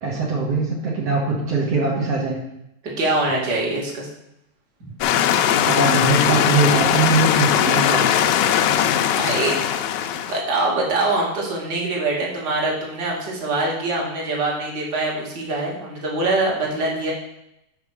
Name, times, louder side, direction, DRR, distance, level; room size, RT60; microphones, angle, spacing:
voice 1, 0.0-2.4 5.6-8.1, right 3 dB, 80° right, -4 dB, 1.4 m, -21 dB
voice 2, 3.0-4.1 4.8-4.9 9.2-9.5 10.3-17.1, right 2 dB, 40° right, -3 dB, 1.6 m, -23 dB
sound 1, 5.0-10.4, left 10 dB, 80° left, 2.3 m, -19 dB
6.3 x 5.4 x 6.2 m, 0.84 s
omnidirectional pair, 4.9 m